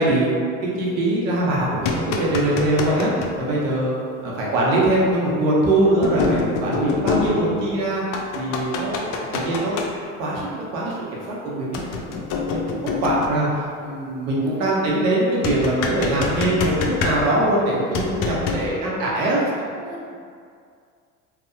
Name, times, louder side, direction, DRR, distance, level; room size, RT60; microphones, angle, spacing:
voice 1, 0.0-8.0 8.3-11.0 11.3-13.5 13.8-19.4, right 1 dB, 80° right, -4 dB, 0.7 m, -22 dB
sound 1, 1.6-3.3 4.8-4.9 6.0-7.8 8.1-9.9 11.7-13.5 15.4-17.5 17.9-18.7, left 4 dB, 55° left, 0.4 m, -26 dB
voice 2, 4.2-4.6 14.4-14.7 18.4-20.1, right 2 dB, 20° right, -4 dB, 0.5 m, -40 dB
2.7 x 2.0 x 2.6 m, 2.2 s
hypercardioid pair, 75°, 39 cm